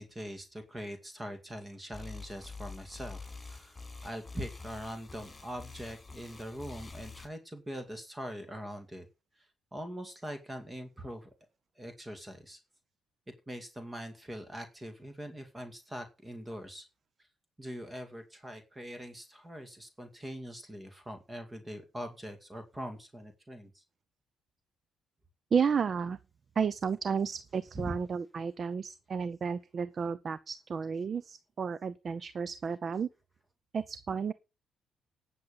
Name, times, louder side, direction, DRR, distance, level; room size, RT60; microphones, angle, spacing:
voice 1, 0.0-9.1 9.4-11.3 11.8-12.6 13.5-16.9 17.6-23.8 27.7-28.0, equal, 15° right, 2.2 m, -42 dB
sound 1, 1.9-7.3, left 4 dB, 20° left, 4.7 m, -46 dB
voice 2, 25.5-26.2 26.6-33.1 33.7-34.3, right 6 dB, 45° right, 0.6 m, -32 dB
10.5 x 7.1 x 7.0 m
cardioid pair, 90°, 0 cm